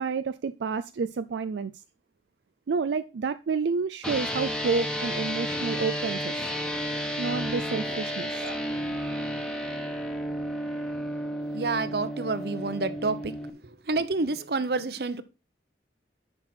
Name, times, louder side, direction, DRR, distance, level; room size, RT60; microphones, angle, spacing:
voice 1, 0.0-1.7 2.7-6.3 7.2-8.3, right 5 dB, 85° right, 0.4 m, -29 dB
sound 1, 4.0-13.5, equal, 5° left, 1.2 m, -32 dB
voice 2, 7.9-8.6 11.5-15.2, right 3 dB, 60° right, 0.8 m, -30 dB
9.8 x 6.0 x 4.4 m
head